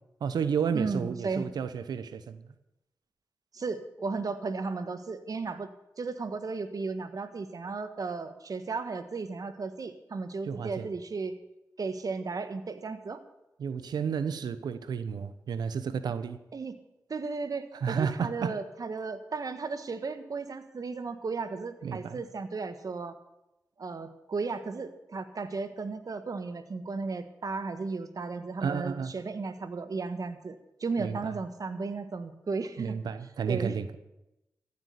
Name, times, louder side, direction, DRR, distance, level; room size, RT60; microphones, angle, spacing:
voice 1, 0.2-2.4 10.4-10.9 13.6-16.4 17.7-18.6 21.8-22.2 28.6-29.1 31.0-31.4 32.8-34.0, right 6 dB, 85° right, 13 dB, 0.9 m, -32 dB
voice 2, 0.7-1.5 3.5-5.7 6.0-11.3 11.8-13.2 16.5-16.7 17.1-23.2 23.8-33.0 33.5-33.8, right 4 dB, 60° right, 10 dB, 1.6 m, -35 dB
15.0 x 8.4 x 8.3 m, 0.91 s
cardioid pair, 40°, 7 cm